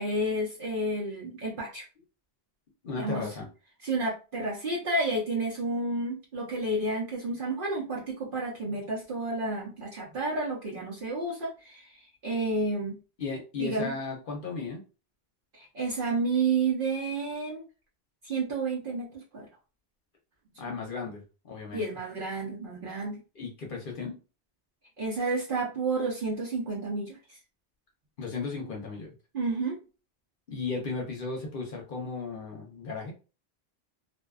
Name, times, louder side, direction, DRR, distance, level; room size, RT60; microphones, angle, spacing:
voice 1, 0.0-1.8 2.9-3.3 3.8-11.9 12.2-13.0 13.6-13.9 15.5-17.7 18.2-19.5 20.6-20.7 21.7-23.2 25.0-27.4 29.3-29.8, right 2 dB, 60° right, -4 dB, 0.9 m, -30 dB
voice 2, 2.8-3.5 13.2-14.8 20.6-21.8 23.3-24.2 28.2-29.1 30.5-33.1, left 4 dB, 60° left, 0 dB, 0.8 m, -35 dB
2.5 x 2.2 x 2.3 m, 0.33 s
omnidirectional pair, 1.1 m